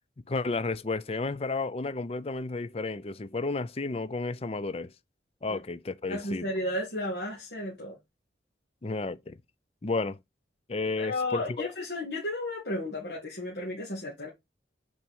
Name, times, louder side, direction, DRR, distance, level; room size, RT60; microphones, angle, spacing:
voice 1, 0.3-4.9 5.4-6.5 8.8-9.4 9.8-10.2 10.7-11.7, left 3 dB, 35° left, 0.5 m, -32 dB
voice 2, 6.1-8.0 11.0-14.3, left 1 dB, 65° left, 2.2 m, -33 dB
5.7 x 4.6 x 5.4 m
head